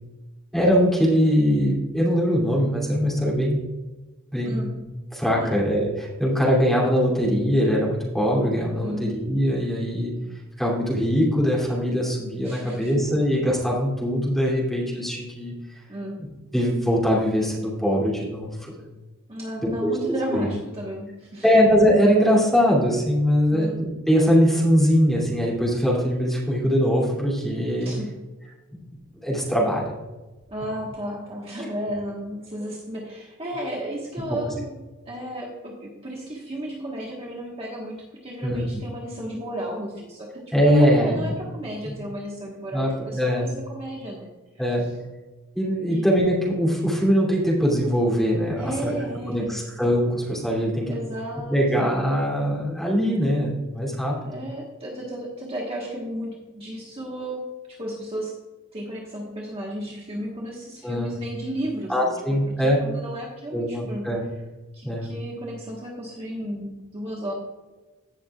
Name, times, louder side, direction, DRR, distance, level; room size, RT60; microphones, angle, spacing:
voice 1, 0.5-3.6 4.3-4.8 5.1-10.1 10.6-15.5 16.5-18.8 19.6-19.9 20.3-20.5 21.4-27.9 29.2-30.0 38.4-38.6 40.5-41.4 41.8-42.0 42.7-43.5 44.6-44.9 45.5-48.9 49.3-50.9 51.5-54.4 60.8-61.2 61.9-62.8 63.5-64.2 64.8-65.1, equal, ahead, -4 dB, 2.7 m, -22 dB
voice 2, 4.4-4.8 5.4-5.6 8.8-9.2 12.4-13.2 15.9-16.2 19.3-21.4 23.5-23.8 27.8-28.2 30.5-34.8 35.0-44.3 44.5-44.9 45.9-46.0 48.6-49.6 50.9-51.9 54.3-57.4 57.7-58.3 58.7-64.1 64.7-67.3, right 1 dB, 25° right, -3 dB, 1.4 m, -34 dB
16.5 x 6.4 x 2.4 m, 1.2 s
head